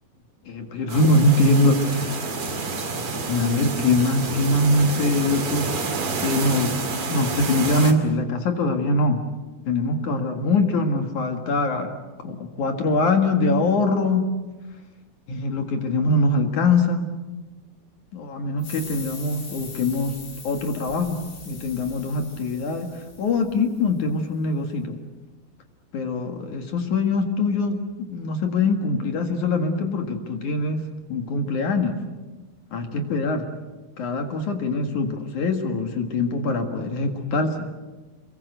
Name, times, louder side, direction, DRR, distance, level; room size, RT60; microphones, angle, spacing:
voice 1, 0.5-2.3 2.9-3.0 3.3-5.7 6.2-6.8 7.1-9.2 9.7-11.9 12.2-14.3 15.3-17.1 18.1-20.2 20.4-25.0 25.9-32.0 32.7-33.5 34.0-37.7, left 2 dB, 55° left, 5 dB, 2.7 m, -23 dB
sound 1, 0.9-7.9, right 4 dB, 40° right, 2.7 m, -29 dB
sound 2, 18.6-23.9, left 3 dB, 90° left, 9.9 m, -42 dB
28.0 x 22.5 x 8.0 m, 1.2 s
omnidirectional pair, 5.0 m